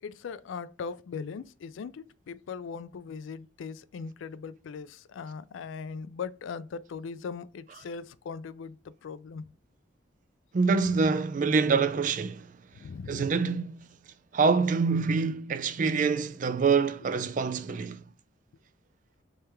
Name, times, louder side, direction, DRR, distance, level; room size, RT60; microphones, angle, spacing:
voice 1, 0.0-9.5 12.8-13.3, left 5 dB, 80° left, 0.3 m, -39 dB
voice 2, 10.5-12.4 13.1-13.9 14.3-18.0, right 5 dB, 40° right, 0.3 m, -26 dB
3.4 x 3.3 x 4.4 m
head